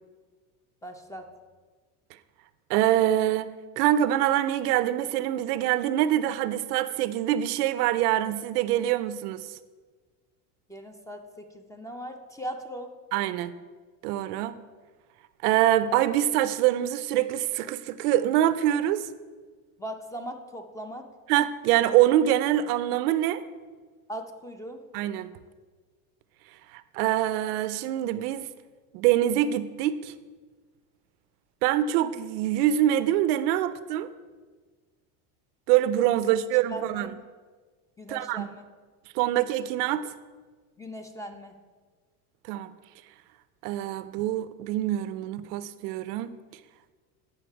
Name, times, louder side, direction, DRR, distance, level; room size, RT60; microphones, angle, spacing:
voice 1, 0.8-1.3 10.7-12.9 19.8-21.1 24.1-24.8 36.2-36.3 36.7-37.1 38.0-38.6 40.8-41.6, equal, 5° left, 5 dB, 0.6 m, -39 dB
voice 2, 2.7-9.4 13.1-13.5 14.0-14.6 15.4-19.1 21.3-23.4 24.9-25.3 26.7-28.5 28.9-30.1 31.6-34.1 35.7-37.1 38.1-38.5 39.1-40.1 42.5-42.7 43.6-46.3, right 12 dB, 85° right, 14 dB, 0.6 m, -25 dB
9.2 x 5.7 x 4.5 m, 1.4 s
supercardioid pair, 115°, 45 cm